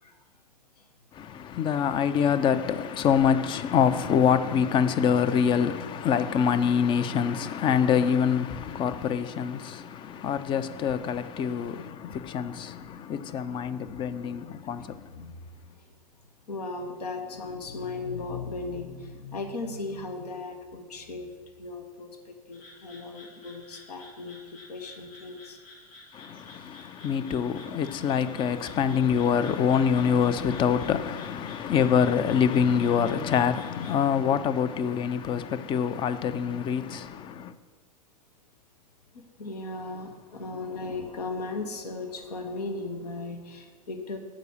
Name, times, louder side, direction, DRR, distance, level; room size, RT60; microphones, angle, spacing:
voice 1, 1.1-15.1 26.1-37.5, left 7 dB, 25° left, 0.4 m, -25 dB
voice 2, 15.1-15.8 16.5-21.3 21.6-24.4 24.7-25.6 39.4-44.2, left 3 dB, 80° left, 1.0 m, -37 dB
sound 1, 22.5-34.0, left 2 dB, 45° left, 1.9 m, -51 dB
6.8 x 4.9 x 6.3 m
hypercardioid pair, 105°, 20 cm